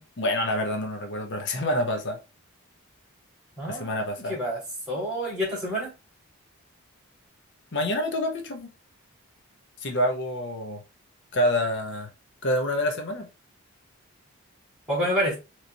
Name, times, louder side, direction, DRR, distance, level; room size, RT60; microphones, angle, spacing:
voice 1, 0.0-2.2 3.7-4.4 7.7-8.7 9.8-10.8 11.3-12.1 12.4-13.3, left 1 dB, 55° left, 0.7 m, -27 dB
voice 2, 3.6-3.9 4.3-4.6 4.9-5.9 14.9-15.4, equal, 5° right, 1.8 m, -27 dB
3.9 x 3.0 x 2.6 m
head